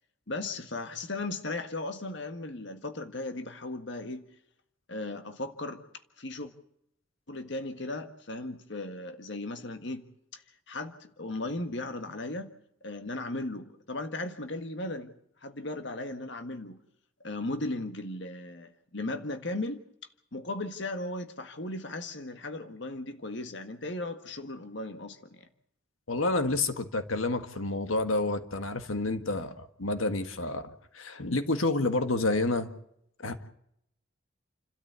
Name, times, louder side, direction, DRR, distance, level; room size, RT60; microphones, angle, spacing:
voice 1, 0.3-4.3 4.9-5.8 6.2-6.5 7.3-10.0 10.3-10.4 10.7-12.5 12.8-15.1 15.4-16.8 17.2-19.8 20.3-25.5, left 2 dB, 60° left, 7 dB, 1.7 m, -36 dB
voice 2, 26.1-32.7 33.2-33.5, left 2 dB, 90° left, 9 dB, 1.7 m, -29 dB
29.5 x 13.0 x 8.2 m, 0.73 s
head